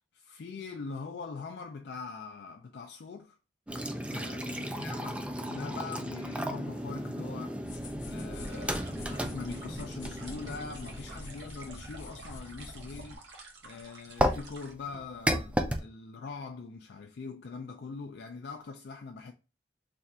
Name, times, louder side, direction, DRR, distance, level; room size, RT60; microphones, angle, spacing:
voice 1, 0.1-3.4 4.1-5.2 5.4-7.6 8.1-13.2 13.6-19.3, left 4 dB, 65° left, 0.4 m, -42 dB
sound 1, 3.7-11.4 14.2-15.8, equal, 5° right, 0.4 m, -34 dB
sound 2, 7.6-13.1, left 1 dB, 85° left, 0.9 m, -45 dB
sound 3, 8.4-14.7, right 3 dB, 70° right, 1.1 m, -51 dB
3.4 x 2.4 x 4.1 m
head